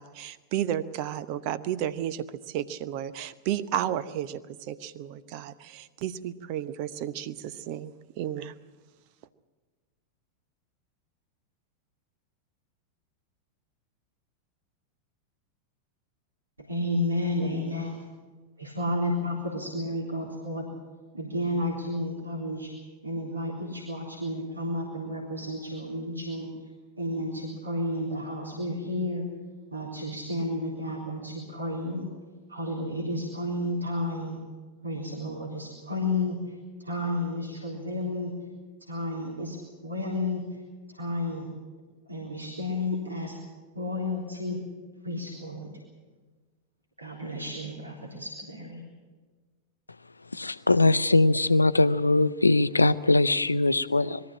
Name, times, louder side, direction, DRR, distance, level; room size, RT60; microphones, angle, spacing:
voice 1, 0.0-8.5, right 11 dB, 45° right, 14 dB, 0.9 m, -33 dB
voice 2, 16.6-18.0 18.6-20.7 21.1-22.7 23.0-26.5 27.0-29.3 29.7-32.0 32.5-34.4 34.8-38.3 38.9-40.4 40.9-41.5 42.1-43.4 43.7-44.6 45.0-45.7 47.0-48.8, left 1 dB, 80° right, -4 dB, 3.7 m, -32 dB
voice 3, 50.3-54.2, left 2 dB, 80° left, 14 dB, 0.6 m, -21 dB
22.0 x 14.0 x 8.8 m, 1.3 s
figure-of-eight pair, 90°, 0 cm